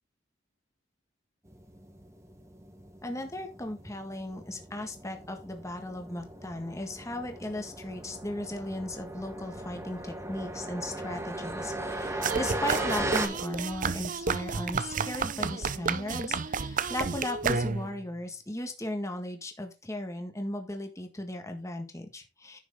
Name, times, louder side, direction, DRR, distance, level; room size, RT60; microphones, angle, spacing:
sound 1, 1.5-13.3, right 1 dB, 15° right, 1.4 m, -38 dB
voice 1, 3.0-22.6, left 1 dB, 15° left, 5 dB, 1.6 m, -36 dB
sound 2, 12.2-18.0, right 5 dB, 45° right, 0.6 m, -31 dB
10.5 x 6.2 x 3.6 m, 0.26 s
head